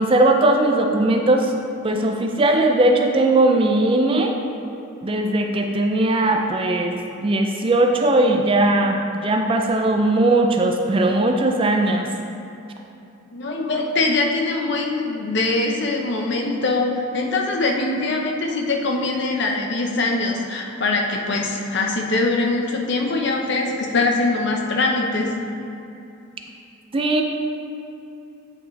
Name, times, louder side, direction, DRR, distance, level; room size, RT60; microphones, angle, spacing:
voice 1, 0.0-1.5 1.8-4.3 5.0-6.9 7.2-12.1 26.9-27.2, right 2 dB, 25° right, 3 dB, 0.3 m, -19 dB
voice 2, 13.3-25.3, left 2 dB, 55° left, 1 dB, 0.7 m, -22 dB
8.6 x 5.3 x 3.2 m, 2.8 s
head